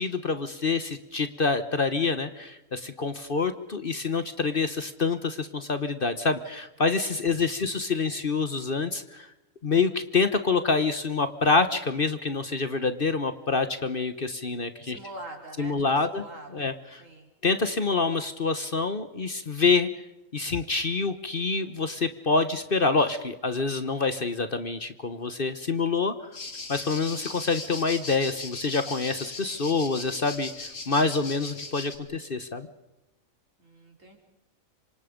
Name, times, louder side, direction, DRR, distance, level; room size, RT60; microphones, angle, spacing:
voice 1, 0.0-9.3 9.6-15.0 15.6-16.2 16.5-17.0 17.4-19.9 20.3-26.1 26.7-32.7, left 4 dB, 40° left, 11 dB, 1.3 m, -26 dB
voice 2, 7.4-7.8 14.8-16.7 17.0-17.3 33.6-34.2, right 2 dB, 65° right, 2 dB, 4.7 m, -44 dB
sound 1, 26.3-32.0, left 3 dB, 65° left, 2.8 m, -39 dB
27.0 x 25.5 x 5.2 m, 0.95 s
omnidirectional pair, 1.5 m